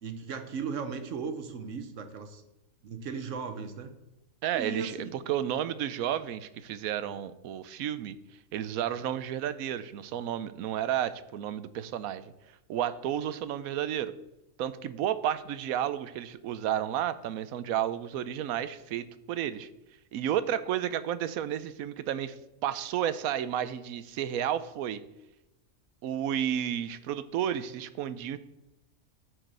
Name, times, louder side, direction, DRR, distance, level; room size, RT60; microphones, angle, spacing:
voice 1, 0.0-2.4 2.8-4.0 4.5-5.1, right 5 dB, 60° right, 8 dB, 1.3 m, -36 dB
voice 2, 4.4-14.1 14.6-19.7 20.1-25.0 26.0-28.4, right 10 dB, 85° right, 14 dB, 1.1 m, -32 dB
12.5 x 4.7 x 6.6 m, 0.94 s
omnidirectional pair, 1.5 m